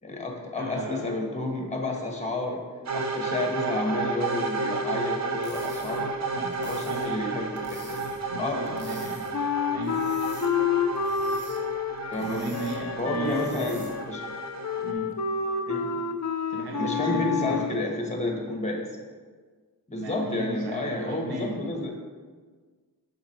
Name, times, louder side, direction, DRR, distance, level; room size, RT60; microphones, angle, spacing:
voice 1, 0.0-2.6 2.9-6.2 6.6-8.0 8.4-8.6 12.1-12.4 13.0-14.2 15.7-16.0 16.7-18.9 19.9-21.9, left 2 dB, 15° left, 1 dB, 1.2 m, -30 dB
voice 2, 0.5-1.1 6.3-7.3 8.3-9.3 9.7-10.0 12.2-13.7 14.8-15.1 16.5-17.9 20.0-21.8, right 2 dB, 75° right, 1 dB, 0.8 m, -36 dB
sound 1, 2.9-14.9, right 3 dB, 45° right, 0.6 m, -32 dB
sound 2, 5.2-14.1, equal, 25° right, 1.5 m, -48 dB
Wind instrument woodwind instrument, 9.3-17.8, left 6 dB, 45° left, 0.5 m, -29 dB
6.3 x 3.9 x 4.4 m, 1.5 s
cardioid pair, 55°, 39 cm